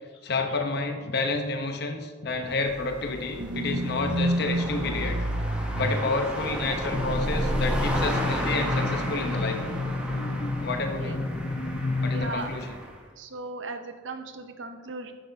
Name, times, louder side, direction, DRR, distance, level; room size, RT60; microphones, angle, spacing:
voice 1, 0.2-5.2 5.7-9.6 10.6-11.2 12.0-12.8, left 3 dB, 60° left, 5 dB, 0.9 m, -29 dB
sound 1, 2.4-13.0, equal, 5° right, 0.9 m, -35 dB
sound 2, 3.4-9.1 9.4-9.5, right 1 dB, 50° right, 0.7 m, -30 dB
sound 3, 6.9-12.3, left 2 dB, 35° left, 0.5 m, -30 dB
voice 2, 12.1-12.5 13.2-15.1, right 3 dB, 80° right, 7 dB, 0.8 m, -37 dB
9.8 x 8.1 x 2.8 m, 1.4 s
head